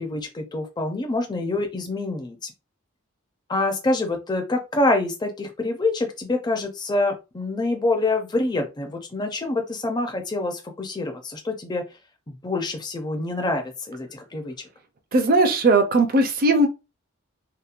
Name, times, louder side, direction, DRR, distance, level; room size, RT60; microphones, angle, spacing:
voice 1, 0.0-2.5 3.5-11.8 12.3-14.5, left 2 dB, 20° left, 0.4 m, -26 dB
voice 2, 15.1-16.7, right 2 dB, 40° right, 0.5 m, -18 dB
2.8 x 2.1 x 2.4 m
head